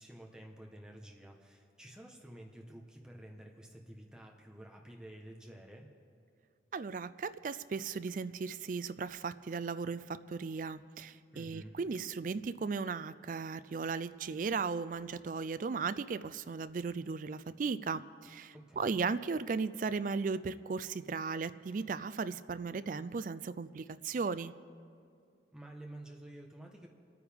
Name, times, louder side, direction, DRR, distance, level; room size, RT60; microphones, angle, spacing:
voice 1, 0.0-5.9 11.3-11.8 18.5-19.0 25.5-26.9, right 1 dB, 5° right, 0 dB, 1.0 m, -51 dB
voice 2, 6.7-24.5, right 5 dB, 45° right, 15 dB, 0.3 m, -36 dB
28.0 x 9.5 x 3.5 m, 2.4 s
head